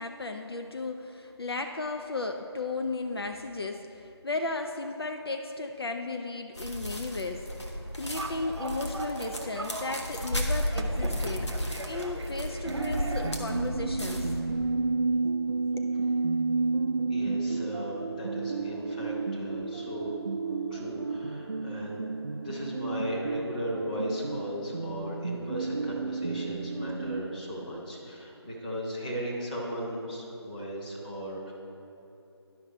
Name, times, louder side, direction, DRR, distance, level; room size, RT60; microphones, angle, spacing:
voice 1, 0.0-7.5 7.9-11.5 11.8-14.3 15.8-15.9, left 3 dB, 60° left, 5 dB, 0.5 m, -35 dB
sound 1, 6.5-14.4, equal, 90° left, 1.4 m, -34 dB
sound 2, 8.0-13.3, right 2 dB, 75° right, 1.0 m, -40 dB
sound 3, 12.7-27.2, right 3 dB, 45° right, 0.5 m, -31 dB
voice 2, 17.1-20.1 20.7-22.1 22.4-31.5, equal, 20° left, -5 dB, 1.1 m, -36 dB
11.0 x 5.5 x 4.2 m, 2.9 s
figure-of-eight pair, 165°, 14 cm